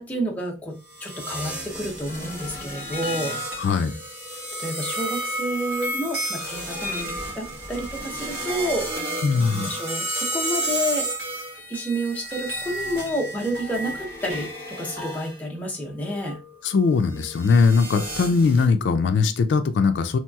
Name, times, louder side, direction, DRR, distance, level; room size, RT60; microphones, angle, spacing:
voice 1, 0.0-3.7 4.6-11.1 11.7-16.4, equal, 10° left, -1 dB, 0.6 m, -30 dB
sound 1, 0.9-15.4 16.0-18.7, right 1 dB, 60° right, 1.2 m, -32 dB
voice 2, 3.6-3.9 9.2-9.7 16.6-20.2, left 4 dB, 70° left, 9 dB, 0.3 m, -20 dB
3.0 x 2.8 x 2.3 m, 0.30 s
head